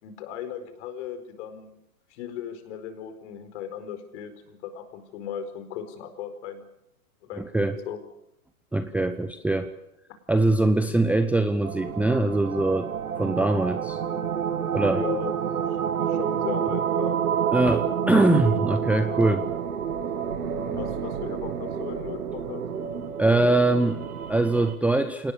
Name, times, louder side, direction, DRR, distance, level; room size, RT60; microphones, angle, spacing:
voice 1, 0.0-1.7 2.1-6.6 7.3-8.0 14.9-15.3 16.0-17.2 20.5-22.6, left 8 dB, 50° left, 9 dB, 4.7 m, -37 dB
voice 2, 7.4-7.8 8.7-9.7 10.3-12.9 13.2-14.0 14.7-15.0 17.5-19.4 23.2-25.3, right 2 dB, 5° right, 7 dB, 0.8 m, -22 dB
sound 1, 11.6-24.7, right 8 dB, 80° right, 2.4 m, -29 dB
27.0 x 19.5 x 6.9 m, 0.79 s
hypercardioid pair, 125°, 43 cm